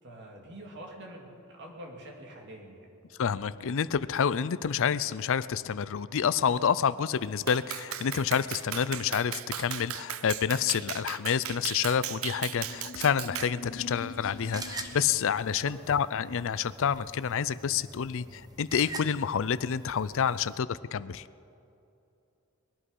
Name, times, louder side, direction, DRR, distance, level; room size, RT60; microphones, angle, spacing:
voice 1, 0.0-2.9 15.5-15.7, right 1 dB, 55° right, 0 dB, 2.7 m, -46 dB
voice 2, 3.2-21.2, left 7 dB, 65° left, 17 dB, 0.5 m, -28 dB
Clapping, 7.5-13.6, right 11 dB, 70° right, 0.6 m, -37 dB
sound 1, 12.5-15.4, left 3 dB, 40° left, 1.1 m, -44 dB
sound 2, 13.8-20.6, right 2 dB, 20° right, 1.0 m, -45 dB
21.0 x 11.5 x 5.5 m, 2.7 s
head